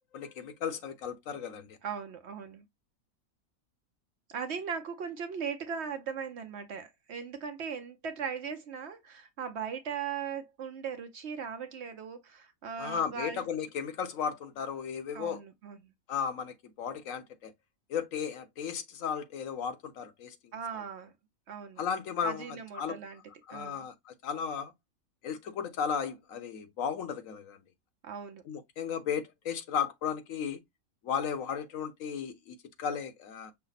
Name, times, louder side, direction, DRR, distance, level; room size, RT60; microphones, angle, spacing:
voice 1, 0.1-1.8 12.8-15.4 16.1-17.5 17.9-20.3 21.8-23.0 23.5-24.7 25.2-27.6 28.5-30.6 31.0-33.5, left 7 dB, 70° left, 1.1 m, -35 dB
voice 2, 1.8-2.6 4.3-13.4 15.1-15.9 20.5-21.1 21.5-21.8 22.2-23.2 23.5-23.9 28.0-28.4, right 6 dB, 60° right, 0.8 m, -38 dB
5.7 x 2.0 x 3.9 m
omnidirectional pair, 1.5 m